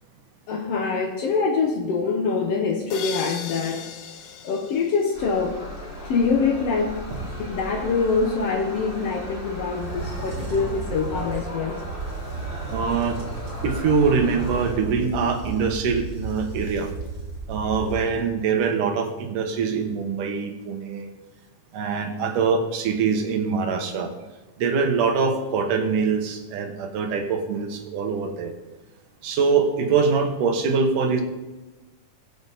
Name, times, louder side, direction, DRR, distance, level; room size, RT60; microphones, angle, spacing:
voice 1, 0.5-3.9 4.4-5.6 6.0-7.1 7.4-11.8, left 4 dB, 65° left, 4 dB, 1.7 m, -24 dB
sound 1, 2.9-5.7, left 8 dB, 85° left, 1.2 m, -37 dB
sound 2, 5.1-14.7, left 1 dB, 15° left, 3.7 m, -36 dB
sound 3, 7.0-8.0 9.7-18.4, right 4 dB, 45° right, 3.5 m, -34 dB
voice 2, 12.7-13.2 13.6-16.9 17.5-21.1 21.7-24.1 24.6-28.5 29.2-31.2, right 5 dB, 75° right, 5 dB, 2.9 m, -23 dB
22.0 x 7.9 x 4.1 m, 1.1 s
omnidirectional pair, 3.7 m